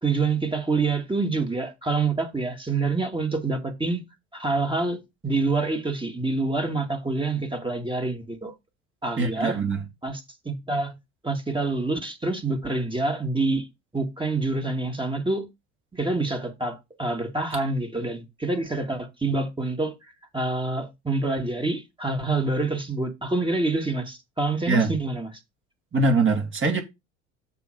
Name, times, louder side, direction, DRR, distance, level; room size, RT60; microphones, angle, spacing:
voice 1, 0.0-4.0 4.3-8.5 9.0-9.6 10.0-11.0 11.2-13.7 13.9-15.5 15.9-20.0 20.3-25.3, right 3 dB, 15° right, 2.1 m, -27 dB
voice 2, 9.2-9.8 24.7-24.9 25.9-26.8, right 3 dB, 35° right, 2.6 m, -22 dB
7.0 x 4.0 x 6.4 m
hypercardioid pair, 70°, 36 cm